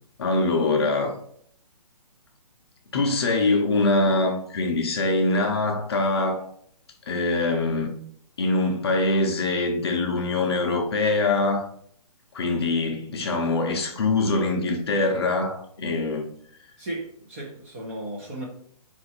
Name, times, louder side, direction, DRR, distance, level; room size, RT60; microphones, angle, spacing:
voice 1, 0.2-1.1 2.9-6.4 7.1-8.0 8.4-11.6 12.3-16.3, left 2 dB, 40° left, 0.7 m, -23 dB
voice 2, 16.8-18.4, right 1 dB, 20° right, 0.7 m, -35 dB
4.3 x 2.5 x 4.2 m
hypercardioid pair, 170°, 19 cm